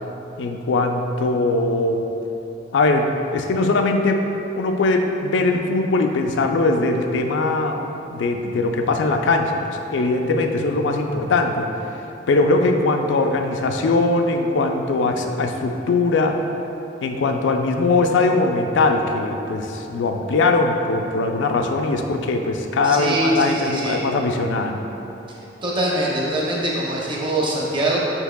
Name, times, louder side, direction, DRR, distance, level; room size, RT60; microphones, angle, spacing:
voice 1, 0.4-2.0 2.7-4.3 4.5-7.8 8.1-11.7 12.3-16.4 17.0-24.8, left 3 dB, 85° left, 4 dB, 0.4 m, -20 dB
voice 2, 22.8-24.0 25.6-28.0, right 1 dB, 25° right, -4 dB, 0.7 m, -23 dB
5.3 x 4.5 x 2.2 m, 3.0 s
head